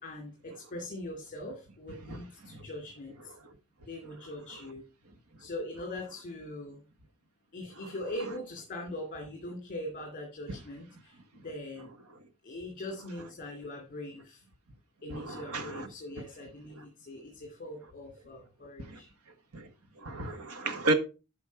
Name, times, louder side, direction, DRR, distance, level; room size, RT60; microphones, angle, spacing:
voice 1, 0.0-3.3 3.9-4.8 5.4-6.8 7.5-11.2 11.4-11.9 12.4-14.4 15.0-19.1, left 1 dB, 40° left, 2.6 m, -41 dB
voice 2, 15.1-15.9 18.9-19.0 19.5-19.6 20.0-20.9, right 2 dB, 75° right, 1.6 m, -32 dB
12.0 x 5.8 x 4.6 m
head